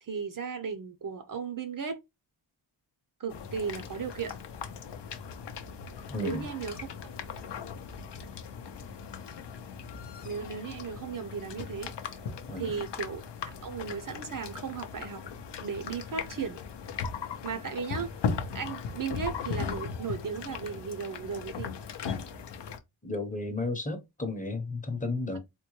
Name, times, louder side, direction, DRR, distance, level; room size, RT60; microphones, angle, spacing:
voice 1, 0.0-2.0 3.2-4.3 6.2-6.9 10.2-12.2 12.6-13.2 13.5-15.3 15.6-16.6 17.4-18.1 18.5-21.7, right 6 dB, 45° right, 0.5 m, -36 dB
sound 1, 3.3-22.8, left 6 dB, 65° left, 0.6 m, -38 dB
voice 2, 6.1-6.4 12.5-12.7 23.0-25.4, left 2 dB, 15° left, 0.8 m, -33 dB
3.7 x 2.2 x 3.0 m
cardioid pair, 70°, 46 cm